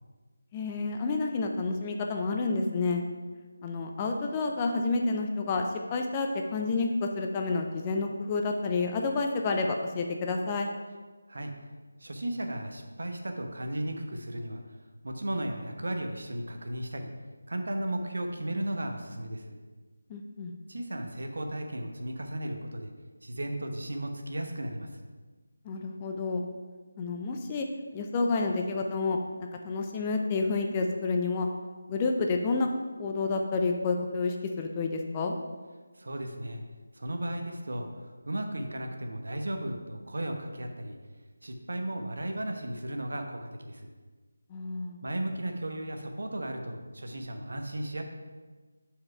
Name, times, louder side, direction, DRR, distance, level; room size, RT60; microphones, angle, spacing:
voice 1, 0.5-3.0 3.6-10.7 20.1-20.5 25.6-26.4 27.0-27.7 27.9-31.5 31.9-32.7 33.0-35.3 44.5-45.0, left 3 dB, 20° left, 3 dB, 0.4 m, -29 dB
voice 2, 12.0-14.6 15.0-17.1 17.5-19.6 20.7-22.9 23.2-24.9 36.0-36.6 36.9-37.9 38.3-41.0 41.4-43.9 45.0-48.0, right 1 dB, 55° right, 4 dB, 0.9 m, -35 dB
6.3 x 4.9 x 5.6 m, 1.4 s
figure-of-eight pair, 160°, 0 cm